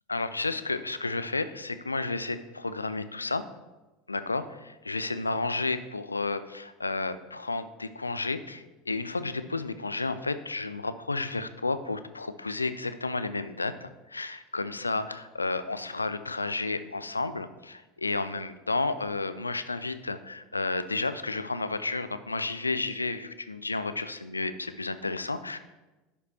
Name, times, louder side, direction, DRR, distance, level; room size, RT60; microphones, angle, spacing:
voice 1, 0.1-3.4 4.1-25.6, left 3 dB, 85° left, 12 dB, 0.3 m, -32 dB
11.5 x 5.1 x 2.8 m, 1.1 s
figure-of-eight pair, 75°, 0 cm